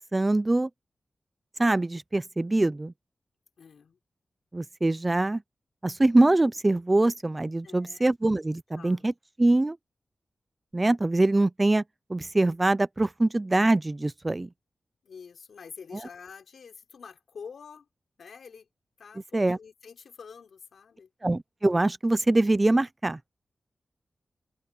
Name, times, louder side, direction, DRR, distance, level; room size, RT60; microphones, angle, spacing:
voice 1, 0.1-0.7 1.6-2.9 4.5-5.4 5.8-9.1 9.4-9.8 10.7-11.8 12.1-14.5 19.3-19.6 21.2-23.2, right 2 dB, 20° right, 0.5 m, -23 dB
voice 2, 3.6-4.0 7.6-8.1 8.7-9.1 15.0-17.9 18.2-18.7 19.0-21.1, left 6 dB, 85° left, 4.7 m, -47 dB
wide cardioid pair, 160°, 0 cm